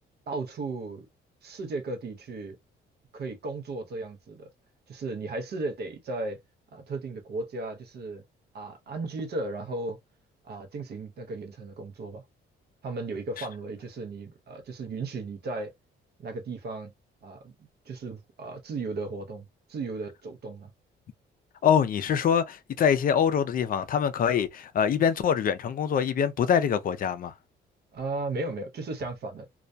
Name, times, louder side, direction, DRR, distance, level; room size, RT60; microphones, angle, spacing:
voice 1, 0.3-1.1 1.4-2.6 3.1-4.5 4.9-6.4 6.7-8.2 8.5-10.0 10.4-12.2 12.8-15.7 16.2-16.9 17.2-20.7 27.9-29.5, right 3 dB, 55° right, 0.6 m, -35 dB
voice 2, 21.6-27.3, left 8 dB, 45° left, 0.4 m, -24 dB
2.3 x 2.1 x 2.5 m
cardioid pair, 90°, 20 cm